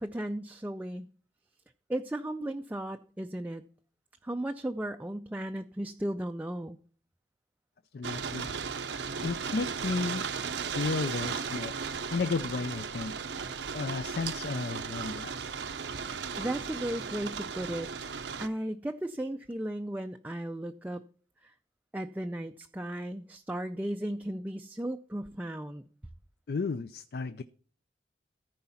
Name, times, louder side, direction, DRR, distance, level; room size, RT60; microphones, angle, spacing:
voice 1, 0.0-1.1 1.9-3.6 4.2-6.8 15.9-16.1 16.4-17.9 18.4-21.0 21.4-21.5 21.9-25.8, right 1 dB, 10° right, 0.3 m, -35 dB
voice 2, 7.9-8.7 9.2-10.2 10.7-11.7 12.1-15.3 26.5-27.4, left 4 dB, 60° left, 0.4 m, -33 dB
sound 1, 8.0-18.5, right 6 dB, 90° right, 0.7 m, -36 dB
14.5 x 4.8 x 5.6 m
head